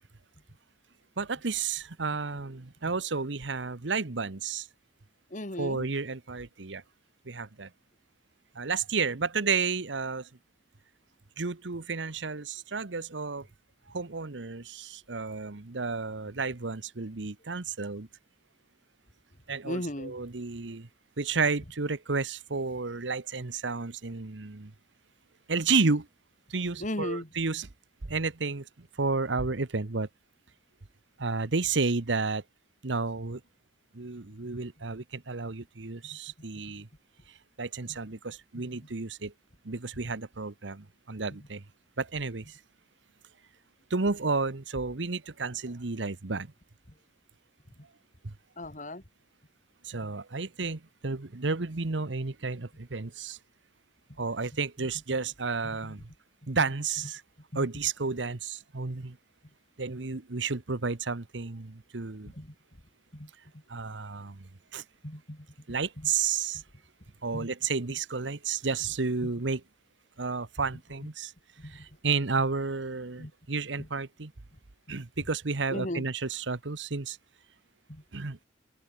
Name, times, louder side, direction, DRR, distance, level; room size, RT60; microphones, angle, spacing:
voice 1, 1.2-4.7 5.6-6.8 7.2-7.7 8.5-10.3 11.4-13.5 13.9-18.1 19.5-20.9 21.2-24.7 25.5-26.1 26.5-27.7 28.0-30.1 31.2-32.4 32.8-33.4 33.9-36.9 37.6-39.3 39.6-41.6 42.0-42.6 43.9-46.5 48.2-48.3 49.8-53.4 54.2-56.1 56.5-57.2 57.5-59.2 59.8-62.3 63.7-64.8 65.7-66.6 67.2-69.6 70.2-71.3 71.6-74.3 74.9-77.2 78.1-78.4, right 4 dB, 80° right, 1.1 m, -31 dB
voice 2, 5.3-5.9 19.6-20.2 26.8-27.3 36.0-36.2 37.9-38.0 38.5-38.6 46.9-47.0 47.8-47.9 48.6-49.0 49.9-50.1 55.6-56.0 57.5-57.7 62.3-62.6 63.1-63.6 65.0-65.5 66.0-66.1 66.5-66.6 67.3-67.5 69.2-69.3 71.6-71.9 73.2-73.3 73.8-73.9 74.9-75.0 75.7-76.1 77.9-78.0, left 1 dB, 45° left, 3.5 m, -38 dB
open air
head